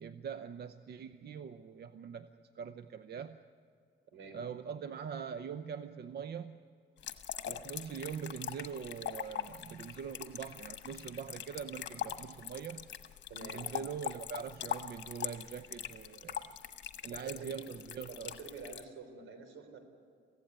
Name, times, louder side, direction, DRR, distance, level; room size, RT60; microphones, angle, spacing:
voice 1, 0.0-2.3 2.5-3.4 4.3-6.6 7.5-12.9 13.5-16.5 17.0-18.4, right 7 dB, 55° right, 10 dB, 0.8 m, -43 dB
voice 2, 4.1-4.4 13.3-13.7 17.2-17.7 18.1-19.8, right 4 dB, 80° right, 7 dB, 3.6 m, -48 dB
sound 1, 7.0-18.8, left 10 dB, 65° left, 1.4 m, -42 dB
23.0 x 16.0 x 9.3 m, 2.3 s
cardioid pair, 90°, 20 cm